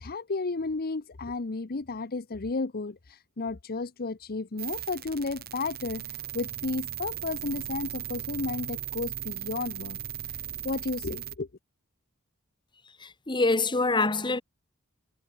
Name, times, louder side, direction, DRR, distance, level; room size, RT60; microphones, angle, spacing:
voice 1, 0.0-6.0 6.3-10.0 10.3-10.4 10.6-11.5, left 3 dB, 45° left, 0.8 m, -33 dB
sound 1, 4.6-11.4, right 10 dB, 45° right, 6.6 m, -37 dB
voice 2, 13.0-14.4, left 3 dB, 20° left, 1.5 m, -25 dB
head